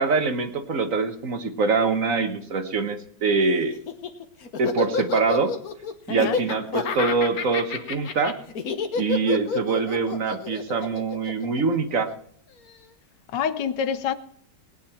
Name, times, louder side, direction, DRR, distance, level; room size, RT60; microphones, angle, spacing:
voice 1, 0.0-3.7 4.6-5.5 6.1-8.4 8.9-12.1, right 4 dB, 50° right, 1.5 m, -24 dB
Laughter, 3.7-12.1, left 6 dB, 60° left, 1.6 m, -29 dB
voice 2, 6.1-6.4 13.3-14.1, left 7 dB, 85° left, 1.5 m, -26 dB
19.0 x 9.5 x 4.5 m
omnidirectional pair, 1.8 m